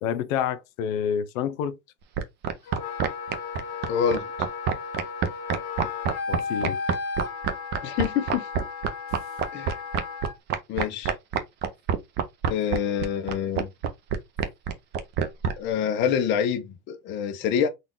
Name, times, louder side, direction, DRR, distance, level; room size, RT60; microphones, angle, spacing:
voice 1, 0.0-1.8 6.3-6.8, left 8 dB, 70° left, 0.7 m, -28 dB
sound 1, 2.2-15.5, right 8 dB, 25° right, 0.4 m, -25 dB
Wind instrument woodwind instrument, 2.7-10.4, left 5 dB, 50° left, 1.1 m, -34 dB
voice 2, 3.9-4.3 7.8-8.5 9.5-9.8 10.7-11.1 12.5-13.7 15.6-17.7, left 8 dB, 30° left, 0.6 m, -26 dB
3.9 x 2.3 x 3.6 m
supercardioid pair, 145°, 41 cm